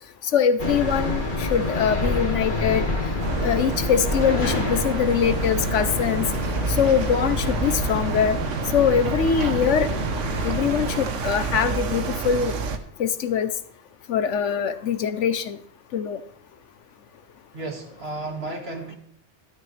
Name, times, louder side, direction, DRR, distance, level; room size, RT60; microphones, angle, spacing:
voice 1, 0.2-2.9 3.4-6.3 6.7-8.4 8.7-9.9 10.4-12.5 13.0-13.5 14.1-15.6 15.9-16.2, left 7 dB, 75° left, 12 dB, 1.1 m, -23 dB
sound 1, 0.6-11.1, left 2 dB, 40° left, 1.9 m, -28 dB
sound 2, 3.2-12.8, right 5 dB, 75° right, 1.3 m, -29 dB
voice 2, 17.5-19.0, right 2 dB, 55° right, 2 dB, 2.2 m, -33 dB
12.5 x 12.5 x 3.2 m, 0.63 s
omnidirectional pair, 1.3 m